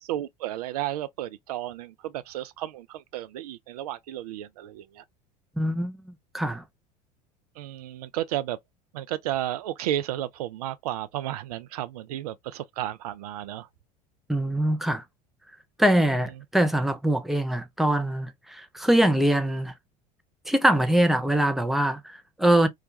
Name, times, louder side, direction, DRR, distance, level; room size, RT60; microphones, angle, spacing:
voice 1, 0.0-5.0 7.6-8.6 8.9-13.7, right 13 dB, 65° right, 0.4 m, -33 dB
voice 2, 5.6-6.6 14.3-15.0 15.8-19.7 20.5-22.7, right 1 dB, ahead, 0.4 m, -23 dB
2.4 x 2.2 x 2.7 m
figure-of-eight pair, 75°, 21 cm